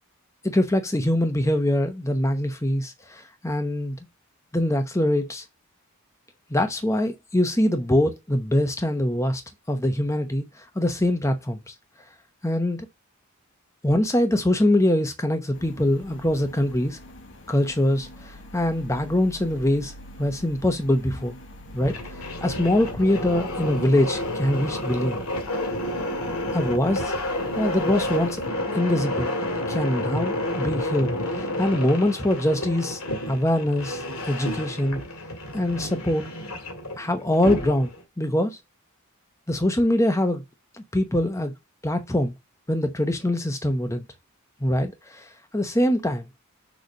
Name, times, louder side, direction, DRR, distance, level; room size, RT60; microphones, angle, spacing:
voice 1, 0.4-4.0 4.5-5.4 6.5-9.4 9.7-10.4 10.7-11.6 12.4-12.8 13.8-17.0 17.5-19.9 20.2-21.4 21.7-21.9 22.4-25.2 26.5-27.1 27.6-28.4 28.7-29.3 29.7-31.1 31.4-33.0 33.3-34.0 34.3-35.0 35.5-36.2 37.0-38.6 39.5-40.4 40.9-41.5 41.8-42.3 42.7-44.1 44.6-45.3 45.5-46.3, left 1 dB, 15° left, 0.8 m, -23 dB
sound 1, 15.5-28.5, left 1 dB, 55° left, 1.2 m, -44 dB
sound 2, 21.6-38.0, left 1 dB, 75° left, 2.0 m, -30 dB
6.6 x 3.3 x 5.2 m
head